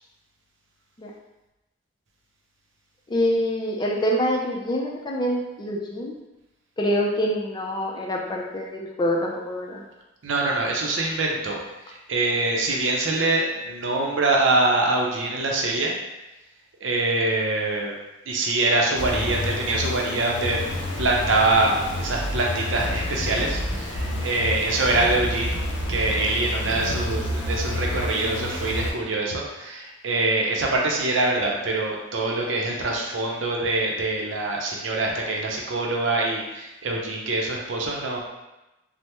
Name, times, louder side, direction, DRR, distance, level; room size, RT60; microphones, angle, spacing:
voice 1, 3.1-6.2 6.8-9.8, equal, 25° left, -2 dB, 0.4 m, -25 dB
voice 2, 10.2-11.6 11.9-15.9 16.8-17.9 18.3-20.7 21.0-25.6 25.9-38.2, right 2 dB, 85° right, -1 dB, 0.6 m, -24 dB
sound 1, 18.9-28.9, left 1 dB, 80° left, 0.6 m, -29 dB
3.3 x 2.0 x 2.9 m, 0.99 s
head